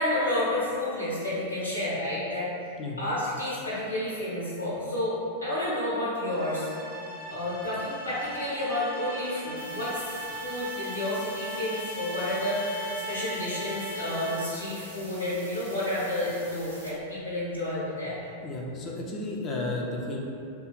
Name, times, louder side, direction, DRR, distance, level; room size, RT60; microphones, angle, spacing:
voice 1, 0.0-2.5 3.0-6.7 7.3-18.2, left 1 dB, 85° left, -9 dB, 0.8 m, -30 dB
sound 1, 6.3-14.7, equal, 40° right, 0.6 m, -38 dB
sound 2, 9.6-16.9, right 1 dB, 85° right, 0.6 m, -47 dB
voice 2, 18.4-20.2, left 2 dB, 30° left, -2 dB, 0.3 m, -33 dB
2.7 x 2.3 x 2.4 m, 2.6 s
figure-of-eight pair, 90°, 0 cm